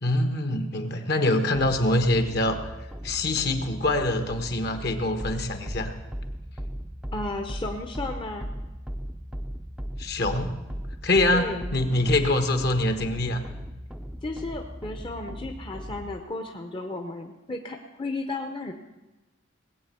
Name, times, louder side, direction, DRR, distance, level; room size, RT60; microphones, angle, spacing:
voice 1, 0.0-2.6 3.0-5.9 10.0-10.6 11.0-13.4, left 2 dB, 50° left, 6 dB, 1.4 m, -24 dB
sound 1, 1.5-16.2, equal, 5° right, 0.6 m, -37 dB
voice 2, 7.1-8.5 11.3-11.6 14.2-18.7, left 2 dB, 25° left, 3 dB, 0.9 m, -34 dB
19.0 x 8.6 x 6.9 m, 1.1 s
head